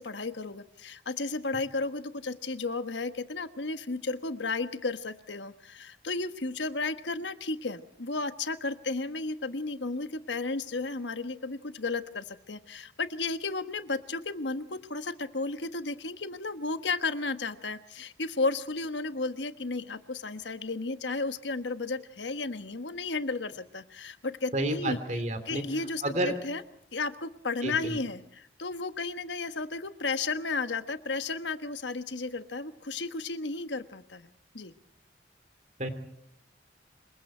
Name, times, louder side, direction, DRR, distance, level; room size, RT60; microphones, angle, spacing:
voice 1, 0.0-26.6 26.9-34.7, left 3 dB, 85° left, 10 dB, 1.3 m, -33 dB
voice 2, 24.5-25.6 26.0-26.3 27.6-28.0 35.8-35.9, right 1 dB, 40° right, 10 dB, 3.0 m, -30 dB
27.0 x 23.0 x 4.5 m, 0.70 s
head